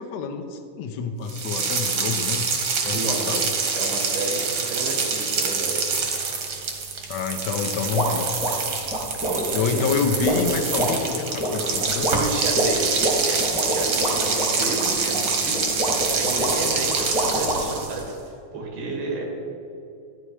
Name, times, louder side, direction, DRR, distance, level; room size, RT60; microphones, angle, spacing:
voice 1, 0.0-2.5 2.8-3.5 7.1-8.3 9.5-12.1, left 5 dB, 75° left, 4 dB, 1.7 m, -27 dB
sound 1, 1.3-18.1, right 5 dB, 60° right, 1.5 m, -26 dB
voice 2, 2.9-5.9 9.2-10.0 12.0-15.6 16.1-18.1 18.5-19.2, right 3 dB, 90° right, 0 dB, 4.0 m, -31 dB
sound 2, 7.9-17.8, equal, ahead, 0.7 m, -27 dB
Bowed string instrument, 12.9-17.8, right 1 dB, 55° left, 0.6 m, -41 dB
13.5 x 9.8 x 4.8 m, 2.7 s
omnidirectional pair, 4.2 m